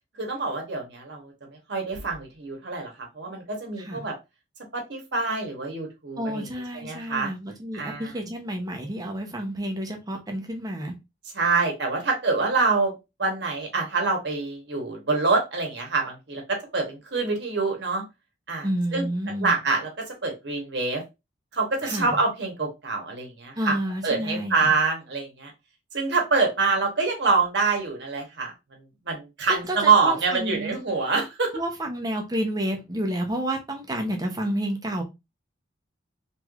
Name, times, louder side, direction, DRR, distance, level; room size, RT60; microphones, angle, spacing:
voice 1, 0.2-2.9 3.1-4.1 4.7-7.3 7.7-8.1 11.3-12.9 13.2-18.0 18.5-19.1 19.4-21.0 21.5-23.8 24.0-25.5 25.9-28.5 29.0-31.5, right 4 dB, 60° right, 1.0 m, -26 dB
voice 2, 6.2-10.9 18.6-19.6 21.8-22.2 23.6-24.6 29.5-30.7 31.5-35.0, right 1 dB, 20° right, 0.6 m, -30 dB
3.1 x 3.0 x 2.3 m
head